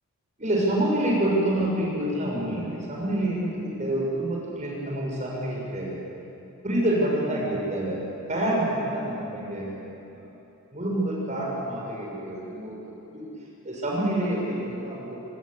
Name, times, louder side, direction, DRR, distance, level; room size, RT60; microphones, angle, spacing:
voice 1, 0.4-6.0 6.6-8.0 8.3-9.8 10.1-10.3 10.7-12.8 13.1-13.3 13.6-15.2, right 1 dB, 35° right, -3 dB, 6.8 m, -27 dB
26.5 x 20.0 x 8.3 m, 2.8 s
head